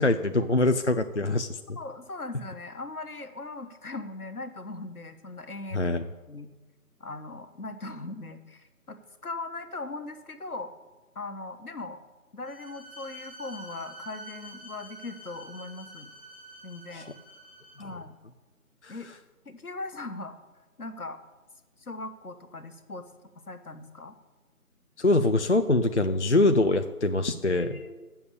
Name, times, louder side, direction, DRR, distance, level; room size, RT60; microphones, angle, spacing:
voice 1, 0.0-1.8 5.7-6.0 16.9-17.1 18.8-19.0 25.0-27.8, left 2 dB, 55° left, 8 dB, 0.4 m, -24 dB
voice 2, 1.8-5.9 6.3-6.5 7.0-10.7 11.1-12.0 12.3-16.1 16.6-17.1 17.8-18.2 18.9-19.1 19.4-20.4 20.8-21.2 21.8-23.0 23.5-24.1 27.5-28.1, left 2 dB, 75° left, 8 dB, 1.3 m, -39 dB
Bowed string instrument, 12.4-17.9, right 1 dB, 5° right, 4.0 m, -47 dB
8.4 x 7.0 x 8.4 m, 1.2 s
figure-of-eight pair, 170°, 45 cm